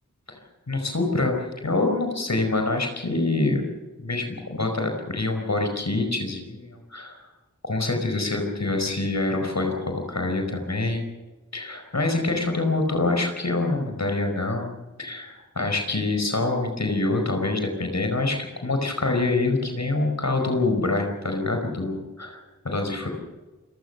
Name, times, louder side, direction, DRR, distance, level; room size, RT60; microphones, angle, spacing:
voice 1, 0.7-3.7 4.0-7.2 7.6-11.1 11.5-23.1, left 2 dB, 60° left, 4 dB, 5.0 m, -26 dB
28.5 x 16.0 x 6.9 m, 1.2 s
wide cardioid pair, 60°, 31 cm